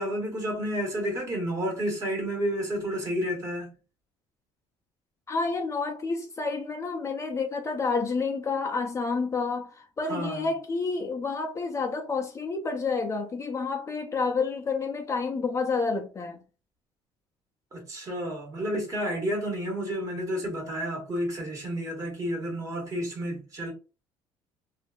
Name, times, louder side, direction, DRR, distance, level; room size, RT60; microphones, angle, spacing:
voice 1, 0.0-3.7 10.0-10.5 17.7-23.7, equal, 30° right, 1.4 m, -31 dB
voice 2, 5.3-16.4, left 4 dB, 25° left, 0.5 m, -29 dB
2.6 x 2.5 x 2.3 m
cardioid pair, 100°, 11 cm